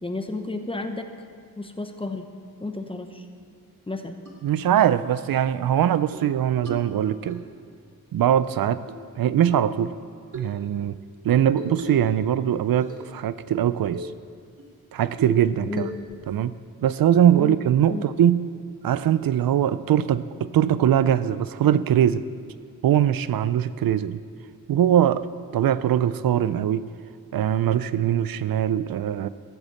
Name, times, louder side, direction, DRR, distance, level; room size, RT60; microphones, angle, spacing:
voice 1, 0.0-1.1 1.6-2.2 2.6-3.3 3.9-4.2 15.7-15.9 17.4-17.6 17.9-18.1, left 2 dB, 15° left, 6 dB, 1.0 m, -31 dB
sound 1, 4.3-4.4 4.9-5.1 5.5-5.6 5.9-6.3 6.7-7.4 8.4-9.1 9.4-9.7 10.3-10.5 11.6-12.2 12.5-13.2 13.5-13.6 13.9-14.2 14.6-14.7 15.2-15.5 15.8-16.2, left 2 dB, 60° right, 2.4 m, -37 dB
voice 2, 4.4-7.4 8.1-8.8 9.2-9.9 10.3-11.0 11.2-14.1 14.9-15.9 16.3-16.5 16.8-18.5 18.8-22.2 22.8-24.2 24.7-25.3 25.5-26.9 27.3-29.3, right 10 dB, 75° right, 15 dB, 0.5 m, -21 dB
13.5 x 8.0 x 7.1 m, 2.1 s
wide cardioid pair, 105°, 35 cm